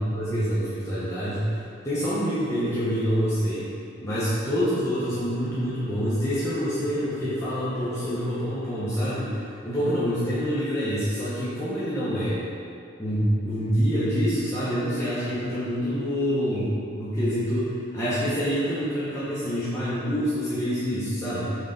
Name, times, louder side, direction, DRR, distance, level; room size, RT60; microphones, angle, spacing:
voice 1, 0.0-1.6 1.8-3.7 4.0-12.4 13.0-21.6, equal, 15° left, -11 dB, 0.9 m, -26 dB
6.4 x 3.9 x 3.9 m, 2.5 s
head